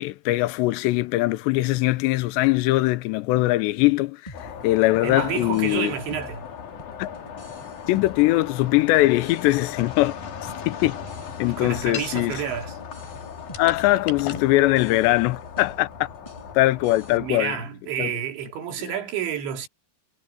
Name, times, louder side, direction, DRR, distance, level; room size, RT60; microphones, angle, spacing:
voice 1, 0.0-5.9 7.0-7.1 7.9-10.1 10.7-11.0 11.4-12.3 13.6-15.9 16.5-17.6 18.0-18.1, left 18 dB, 85° left, 2.9 m, -21 dB
sound 1, 4.3-17.3, left 7 dB, 50° left, 3.1 m, -38 dB
sound 2, 4.3-17.2, left 1 dB, 5° left, 5.9 m, -47 dB
voice 2, 5.0-6.5 11.5-12.8 17.1-19.7, right 8 dB, 90° right, 5.0 m, -30 dB
sound 3, 9.4-13.1 13.5-14.5, left 9 dB, 70° left, 5.1 m, -39 dB
omnidirectional pair, 5.1 m